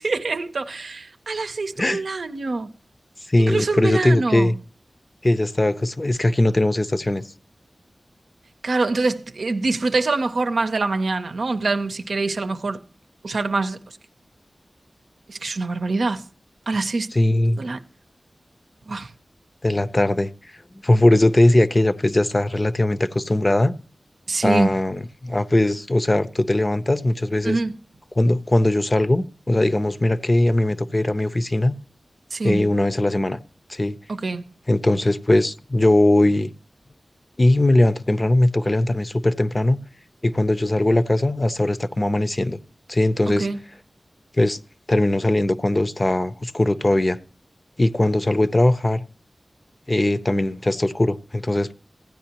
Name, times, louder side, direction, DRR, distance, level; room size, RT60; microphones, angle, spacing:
voice 1, 0.0-2.7 3.4-4.5 8.6-12.8 13.2-14.0 15.3-16.2 16.7-17.1 17.6-17.8 18.9-19.1 24.3-24.7 27.4-27.8 32.3-32.6 34.1-34.5 43.3-43.6, right 3 dB, 85° right, 0.6 m, -25 dB
voice 2, 3.3-4.5 5.2-7.2 17.1-17.6 19.6-20.3 20.8-23.7 24.4-27.6 28.2-31.8 32.4-33.4 33.7-33.9 34.7-36.5 37.4-39.8 40.2-42.6 42.9-43.5 44.4-44.6 44.9-47.2 47.8-49.0 49.9-51.7, left 1 dB, 35° left, 0.6 m, -20 dB
15.0 x 9.3 x 2.9 m
wide cardioid pair, 60°, 0 cm